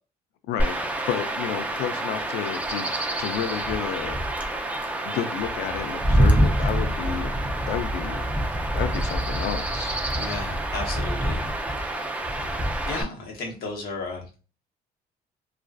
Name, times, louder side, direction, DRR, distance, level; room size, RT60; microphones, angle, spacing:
Chirp tweet / Wind / Stream, 0.6-13.0, right 1 dB, 10° right, 0.4 m, -26 dB
voice 1, 1.1-2.9 3.2-4.2 5.1-7.3 7.7-8.2 8.7-10.0, left 9 dB, 80° left, 10 dB, 0.4 m, -31 dB
voice 2, 10.2-11.4 11.8-14.4, left 3 dB, 65° left, 1 dB, 0.9 m, -35 dB
2.4 x 2.3 x 2.2 m, 0.33 s
cardioid pair, 110°, 17 cm